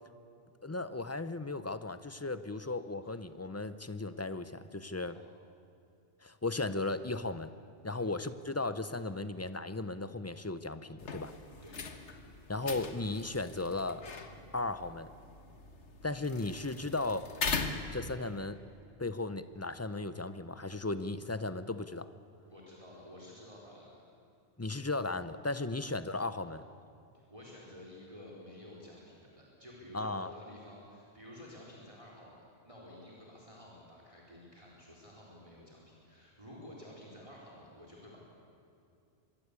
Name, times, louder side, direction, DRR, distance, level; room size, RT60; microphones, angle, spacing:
voice 1, 0.6-5.2 6.2-7.5 7.8-11.3 12.5-14.0 14.5-15.1 16.0-17.3 17.9-18.6 19.0-22.1 24.6-26.6 29.9-30.3, left 2 dB, 15° left, 12 dB, 0.6 m, -36 dB
sound 1, 11.0-18.5, left 4 dB, 75° left, 1.8 m, -41 dB
voice 2, 22.5-24.0 27.1-38.2, left 1 dB, 25° right, -4 dB, 4.4 m, -52 dB
25.0 x 21.5 x 8.4 m, 2.5 s
omnidirectional pair, 1.2 m